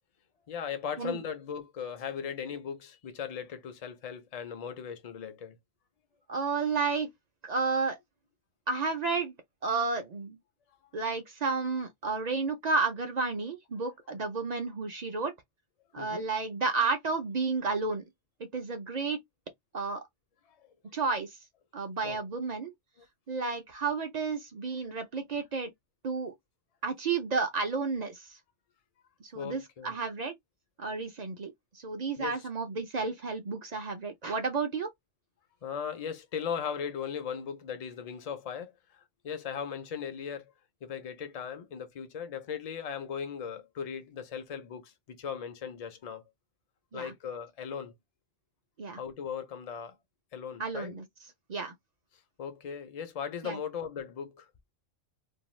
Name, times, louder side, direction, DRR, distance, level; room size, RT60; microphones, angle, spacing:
voice 1, 0.5-5.6 16.0-16.2 20.5-20.7 22.0-22.2 23.0-23.1 29.3-29.9 32.2-32.4 35.6-40.5 40.8-46.2 46.9-47.9 49.0-50.0 50.3-50.9 52.4-54.5, left 7 dB, 45° left, 0.5 m, -38 dB
voice 2, 6.3-7.1 7.4-8.0 8.7-9.3 9.6-10.4 10.9-15.3 15.9-18.0 18.4-19.2 19.7-20.0 20.9-21.4 21.7-22.7 23.3-25.7 26.0-26.3 26.8-28.4 29.2-30.3 30.8-34.9 46.9-47.1 48.8-49.0 50.6-51.1 51.5-51.7 53.4-53.6, right 4 dB, 50° right, 0.5 m, -31 dB
2.7 x 2.2 x 3.1 m
omnidirectional pair, 1.3 m